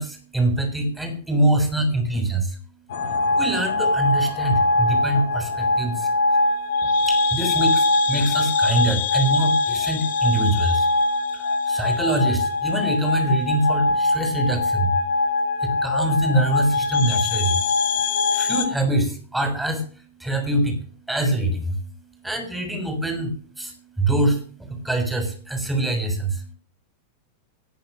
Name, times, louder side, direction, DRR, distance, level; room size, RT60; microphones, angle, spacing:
voice 1, 0.0-2.6 3.4-6.1 6.8-10.9 11.3-15.0 15.6-17.6 18.3-20.8 21.1-21.8 22.2-26.5, right 1 dB, 5° right, 4 dB, 6.8 m, -24 dB
sound 1, 2.9-18.7, left 3 dB, 55° left, 2.6 m, -22 dB
20.0 x 10.5 x 6.8 m, 0.43 s
figure-of-eight pair, 90°, 0 cm